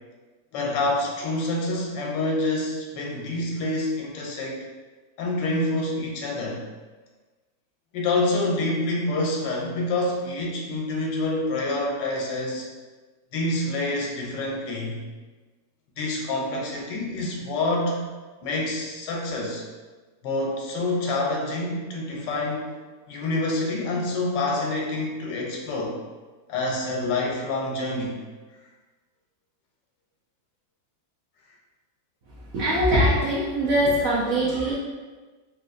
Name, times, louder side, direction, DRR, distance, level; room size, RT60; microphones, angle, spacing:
voice 1, 0.5-4.6 5.2-6.6 7.9-12.7 13.3-15.0 16.0-18.0 18.4-19.6 20.2-22.7 23.1-26.0 26.5-28.1, left 2 dB, 85° left, -1 dB, 1.3 m, -27 dB
voice 2, 32.3-34.7, equal, 70° right, -6 dB, 0.8 m, -22 dB
3.7 x 2.4 x 2.5 m, 1.3 s
omnidirectional pair, 1.9 m